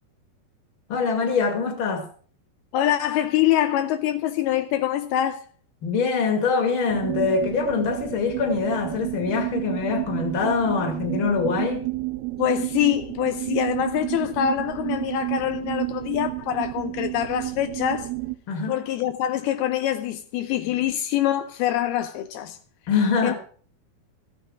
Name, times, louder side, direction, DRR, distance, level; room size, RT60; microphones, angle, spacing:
voice 1, 0.9-2.1 5.8-11.9 18.5-18.8 22.9-23.3, left 5 dB, 40° left, 2.5 m, -24 dB
voice 2, 2.7-5.4 12.4-18.1 18.7-22.6 23.2-23.3, left 11 dB, 80° left, 2.6 m, -24 dB
sound 1, 6.9-18.4, right 21 dB, 85° right, 2.8 m, -31 dB
14.5 x 9.0 x 4.8 m
omnidirectional pair, 4.6 m